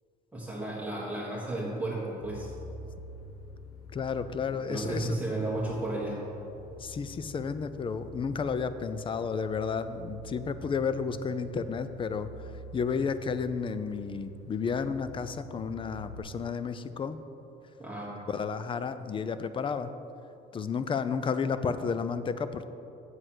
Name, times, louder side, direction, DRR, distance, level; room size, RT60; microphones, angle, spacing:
voice 1, 0.3-2.5 4.7-6.2 17.8-18.2, right 2 dB, 5° right, -7 dB, 1.6 m, -33 dB
sound 1, 2.2-16.2, equal, 85° left, 1.2 m, -46 dB
voice 2, 3.9-5.2 6.8-17.2 18.3-19.9 20.5-22.7, left 5 dB, 30° left, 12 dB, 0.5 m, -32 dB
7.8 x 7.8 x 6.1 m, 2.9 s
cardioid pair, 110°, 17 cm